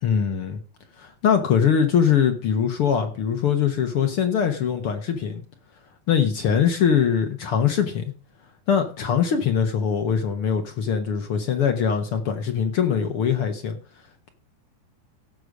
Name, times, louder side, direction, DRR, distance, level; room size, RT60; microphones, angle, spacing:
voice 1, 0.0-0.6 1.0-5.4 6.1-8.1 8.7-13.8, left 7 dB, 55° left, 1.8 m, -22 dB
16.0 x 6.7 x 5.0 m
omnidirectional pair, 3.6 m